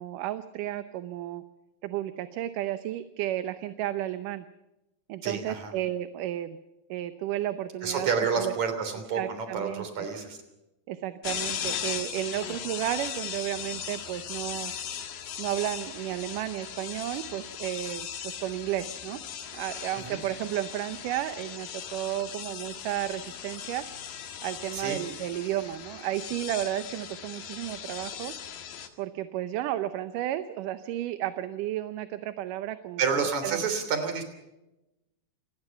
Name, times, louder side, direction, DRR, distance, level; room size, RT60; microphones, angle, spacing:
voice 1, 0.0-1.4 1.8-4.5 5.1-6.6 6.9-8.1 8.4-8.5 9.1-10.1 10.9-14.7 15.4-19.2 19.5-23.9 24.4-28.3 29.0-33.7, right 13 dB, 75° right, 11 dB, 2.3 m, -33 dB
voice 2, 5.2-5.7 7.8-10.4 20.1-20.2 24.7-25.0 33.0-34.2, right 5 dB, 55° right, 8 dB, 4.4 m, -29 dB
sound 1, 11.2-28.9, left 8 dB, 75° left, 3.5 m, -38 dB
27.5 x 19.5 x 5.8 m, 0.97 s
omnidirectional pair, 4.1 m